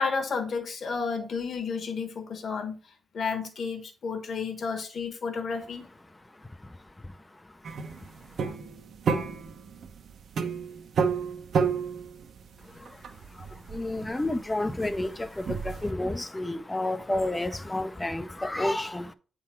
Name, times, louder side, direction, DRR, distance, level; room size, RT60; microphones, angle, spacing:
voice 1, 0.0-2.8 3.1-5.8, left 5 dB, 45° left, 1.2 m, -31 dB
voice 2, 6.3-7.4 7.9-8.1 12.6-19.1, left 1 dB, 10° left, 0.5 m, -31 dB
sound 1, 7.6-15.9, right 5 dB, 55° right, 0.7 m, -31 dB
8.6 x 3.8 x 4.4 m
wide cardioid pair, 175°, 0 cm